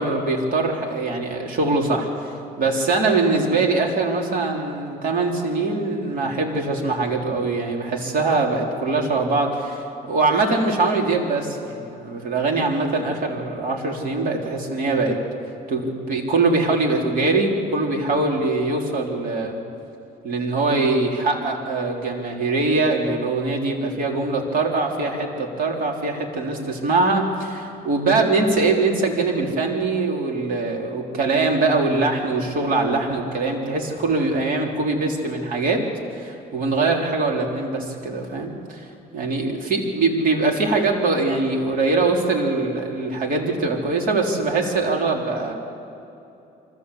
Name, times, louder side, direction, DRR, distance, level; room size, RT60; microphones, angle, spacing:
voice 1, 0.0-2.3 2.6-15.2 15.7-19.6 20.2-35.8 36.1-38.9 39.1-45.5, right 3 dB, 55° right, 0 dB, 3.8 m, -22 dB
25.0 x 15.0 x 8.3 m, 2.8 s
cardioid pair, 110°, 17 cm